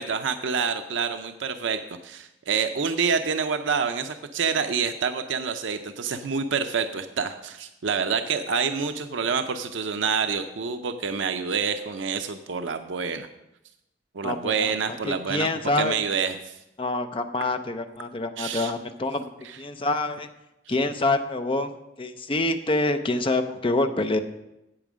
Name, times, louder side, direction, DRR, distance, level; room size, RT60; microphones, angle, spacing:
voice 1, 0.0-13.3 14.2-15.5 15.8-16.5 18.4-18.7 19.4-19.6 20.7-20.8, right 6 dB, 85° right, 8 dB, 0.5 m, -27 dB
voice 2, 14.2-14.7 15.0-16.0 16.8-19.2 19.6-20.3 20.7-21.7 22.0-24.2, left 2 dB, 30° left, 7 dB, 0.6 m, -26 dB
8.8 x 8.3 x 6.2 m, 0.90 s
head